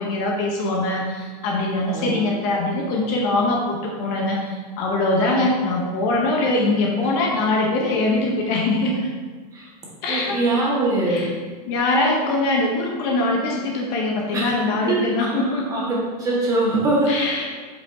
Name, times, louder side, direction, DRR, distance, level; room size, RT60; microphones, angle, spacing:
voice 1, 0.0-9.1 10.0-10.4 11.1-11.3 11.6-15.8 17.1-17.5, left 2 dB, 45° left, -1 dB, 1.0 m, -22 dB
voice 2, 10.1-11.3 14.3-14.5 14.9-15.3 15.7-15.9 16.2-17.3, right 2 dB, 15° right, -5 dB, 1.6 m, -22 dB
6.7 x 5.3 x 2.8 m, 1.5 s
supercardioid pair, 150°, 21 cm